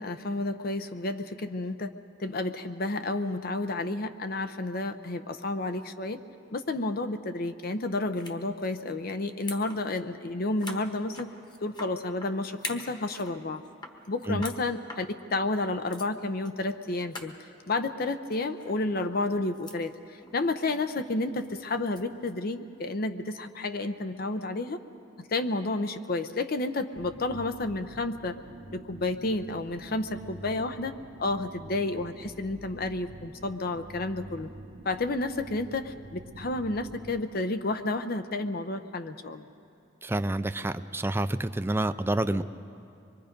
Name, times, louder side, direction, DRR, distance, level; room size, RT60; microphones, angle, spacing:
voice 1, 0.0-1.9 2.2-6.2 6.5-11.3 11.6-13.6 14.1-17.3 17.7-24.8 25.2-28.3 28.7-30.9 31.2-34.5 34.8-39.5, left 2 dB, 55° left, 9 dB, 0.7 m, -31 dB
sound 1, 8.1-8.4 8.6-8.9 9.3-9.8 10.1-10.2 10.6-12.3 12.6-13.4 13.6-14.6 14.9-15.0 15.6-15.7 15.9-16.1 16.4-16.6 16.8-16.9 17.1-17.3 18.3-18.8 19.2-19.8 20.2-20.4 21.4-22.3, left 2 dB, 25° left, 1.3 m, -42 dB
sound 2, 26.9-37.2, right 2 dB, 70° right, 1.0 m, -47 dB
voice 2, 40.0-42.4, right 1 dB, 15° right, 11 dB, 0.5 m, -28 dB
25.0 x 22.5 x 5.2 m, 2.6 s
head